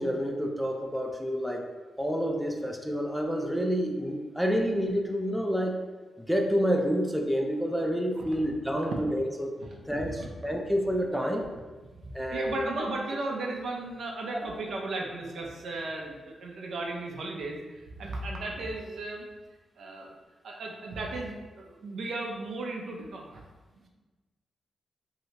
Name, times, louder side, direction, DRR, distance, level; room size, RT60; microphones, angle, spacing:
voice 1, 0.0-1.6 2.0-5.8 6.2-9.6 9.9-11.5 12.1-12.9, equal, ahead, 1 dB, 0.4 m, -28 dB
voice 2, 11.9-19.3 19.8-20.1 20.4-23.4, right 2 dB, 75° right, 0 dB, 0.6 m, -36 dB
3.2 x 2.8 x 2.8 m, 1.3 s
cardioid pair, 70°, 0 cm